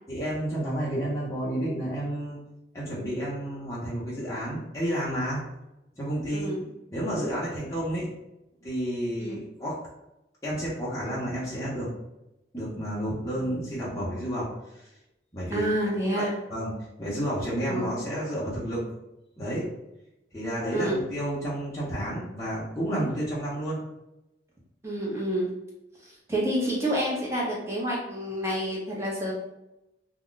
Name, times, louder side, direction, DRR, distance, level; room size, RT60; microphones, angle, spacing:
voice 1, 0.1-2.4 2.7-5.4 6.0-6.5 6.9-8.1 8.6-9.8 10.4-11.9 12.5-14.5 14.7-14.9 15.3-15.7 16.1-16.7 17.0-18.8 19.4-19.7 20.3-23.8, equal, 15° left, -8 dB, 0.7 m, -30 dB
voice 2, 6.3-6.7 9.2-9.4 15.5-16.3 17.7-18.0 20.7-21.0 24.8-25.5 26.0-29.3, right 1 dB, 15° right, -4 dB, 0.8 m, -28 dB
2.4 x 2.1 x 3.7 m, 0.91 s
head